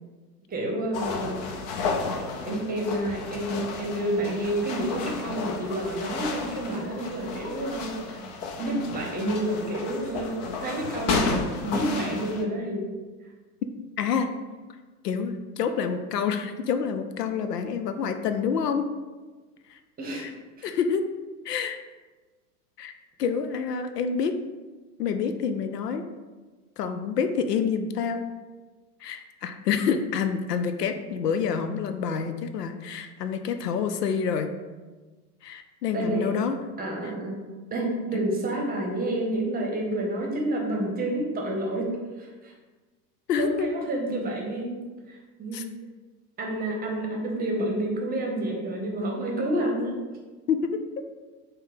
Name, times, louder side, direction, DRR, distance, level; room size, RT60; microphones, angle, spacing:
voice 1, 0.5-1.4 2.5-8.2 8.6-10.4 10.6-12.8 20.0-20.2 20.6-20.7 35.9-36.3 36.8-37.4 37.7-41.9 42.2-42.5 43.4-45.6 46.4-49.9, right 1 dB, 20° right, 0 dB, 0.8 m, -29 dB
sound 1, 0.9-12.4, left 4 dB, 45° left, 0.7 m, -32 dB
voice 2, 14.0-14.3 15.0-18.8 19.7-19.8 20.1-20.3 20.6-21.0 21.4-21.8 22.8-22.9 23.2-24.3 25.0-26.0 26.8-28.3 29.0-34.5 35.4-36.6 38.1-38.2 43.3-43.7 45.5-45.6 50.5-50.8, left 6 dB, 90° left, 8 dB, 0.6 m, -27 dB
5.3 x 2.2 x 3.9 m, 1.3 s
hypercardioid pair, 105°, 46 cm